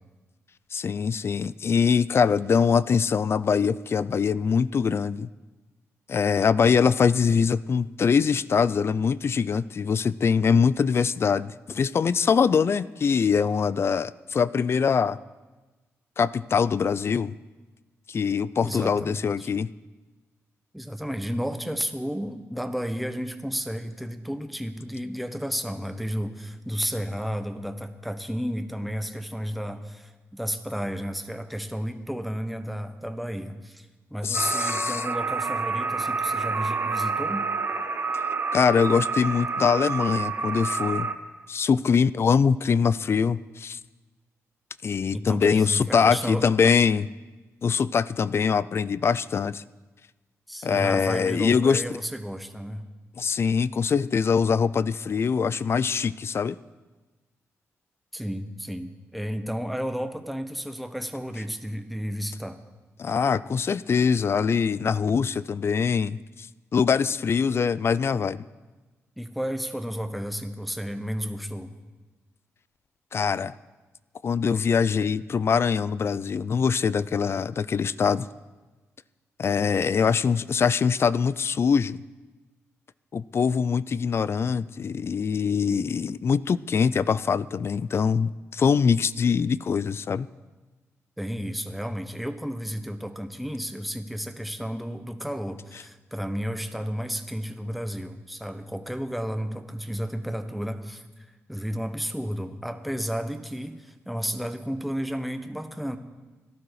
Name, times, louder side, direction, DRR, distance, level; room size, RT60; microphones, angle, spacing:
voice 1, 0.7-5.3 6.1-15.2 16.2-17.3 18.1-19.7 34.2-35.0 38.5-41.1 41.5-43.8 44.8-47.1 47.6-49.6 50.6-51.8 53.2-56.6 63.0-66.5 66.7-68.4 73.1-73.5 74.2-78.3 79.4-82.0 83.1-90.3, left 6 dB, 50° left, 18 dB, 0.4 m, -23 dB
voice 2, 18.6-19.5 20.7-37.5 45.1-46.5 50.5-52.8 58.1-62.6 69.2-71.7 91.2-106.0, equal, ahead, 7 dB, 1.1 m, -32 dB
sound 1, 34.3-41.1, right 4 dB, 40° right, 1.3 m, -28 dB
17.5 x 12.0 x 4.8 m, 1.2 s
cardioid pair, 80°, 6 cm